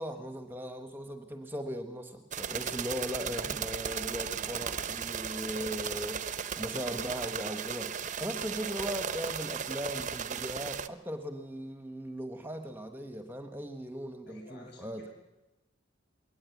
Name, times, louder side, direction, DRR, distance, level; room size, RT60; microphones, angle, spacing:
voice 1, 0.0-15.0, equal, 10° right, 6 dB, 1.1 m, -38 dB
sound 1, 2.3-10.9, right 7 dB, 40° right, 0.7 m, -36 dB
voice 2, 14.3-15.1, left 3 dB, 55° left, 1 dB, 7.8 m, -52 dB
21.0 x 18.5 x 8.3 m, 1.0 s
head